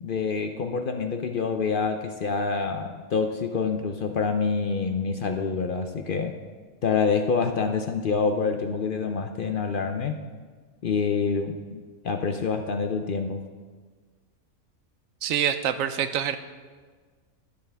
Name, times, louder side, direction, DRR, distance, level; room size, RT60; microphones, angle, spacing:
voice 1, 0.0-6.4 6.8-10.2 10.8-13.4, left 5 dB, 65° left, 6 dB, 0.5 m, -27 dB
voice 2, 15.2-16.4, right 9 dB, 75° right, 11 dB, 1.0 m, -25 dB
11.5 x 10.5 x 3.4 m, 1.5 s
omnidirectional pair, 1.5 m